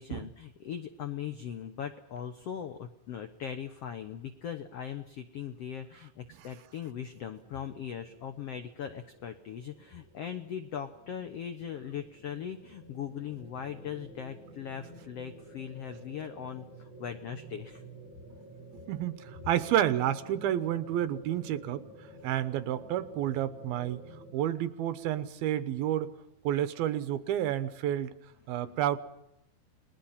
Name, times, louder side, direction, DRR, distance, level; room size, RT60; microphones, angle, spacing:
voice 1, 0.0-17.8, left 8 dB, 90° left, 8 dB, 1.3 m, -40 dB
sound 1, 7.1-24.3, right 1 dB, 50° right, 5.4 m, -51 dB
voice 2, 18.7-21.9 22.2-24.0 24.3-26.2 26.4-28.1 28.5-29.0, right 11 dB, 80° right, 13 dB, 2.8 m, -30 dB
30.0 x 20.5 x 5.8 m, 0.86 s
omnidirectional pair, 4.4 m